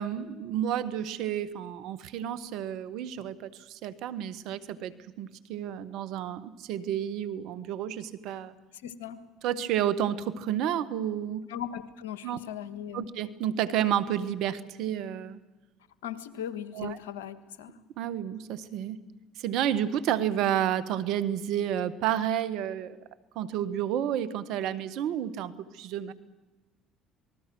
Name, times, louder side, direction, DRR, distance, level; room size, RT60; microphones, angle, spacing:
voice 1, 0.0-8.5 9.4-11.4 12.2-12.4 12.9-15.4 16.7-17.0 18.0-19.0 19.4-23.0 23.3-26.1, right 10 dB, 70° right, 14 dB, 1.4 m, -30 dB
voice 2, 8.7-9.2 11.5-13.1 16.0-17.8, left 9 dB, 90° left, 13 dB, 1.4 m, -38 dB
27.5 x 20.5 x 6.2 m, 1.1 s
hypercardioid pair, 70°, 0 cm